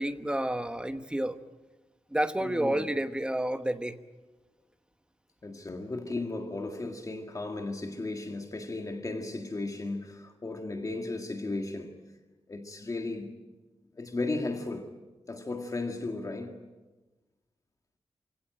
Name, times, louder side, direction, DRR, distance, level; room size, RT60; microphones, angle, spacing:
voice 1, 0.0-1.4 2.1-4.0, right 1 dB, 10° right, 1.0 m, -30 dB
voice 2, 2.4-2.9 5.4-11.9 12.5-13.3 14.0-14.9 15.3-16.6, left 2 dB, 30° left, 1.9 m, -35 dB
28.0 x 17.0 x 8.9 m
wide cardioid pair, 175°, 11 cm